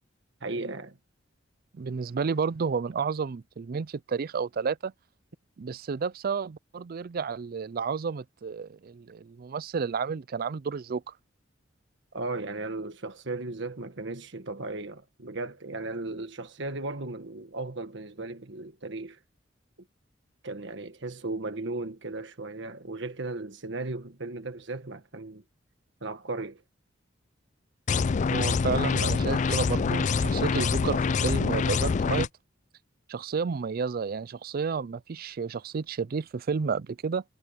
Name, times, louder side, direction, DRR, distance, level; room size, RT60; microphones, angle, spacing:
voice 1, 0.4-1.0 12.1-19.2 20.4-25.4 26.0-26.6, right 2 dB, 65° right, 1.5 m, -36 dB
voice 2, 1.7-4.9 5.6-11.0 28.3-32.3 33.1-37.2, right 5 dB, 50° right, 0.4 m, -31 dB
sound 1, 27.9-32.3, left 5 dB, 40° left, 0.4 m, -25 dB
head